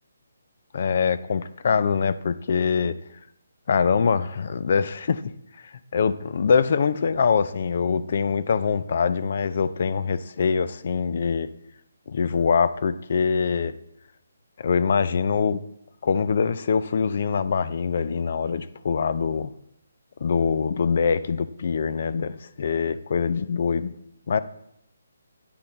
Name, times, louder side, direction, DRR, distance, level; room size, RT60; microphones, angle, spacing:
voice 1, 0.7-3.0 3.7-5.2 5.9-11.5 12.1-13.8 14.6-15.6 16.0-19.5 20.2-23.9 24.3-24.4, left 6 dB, 55° left, 14 dB, 0.4 m, -23 dB
8.6 x 5.7 x 4.0 m, 0.76 s
hypercardioid pair, 155°, 0 cm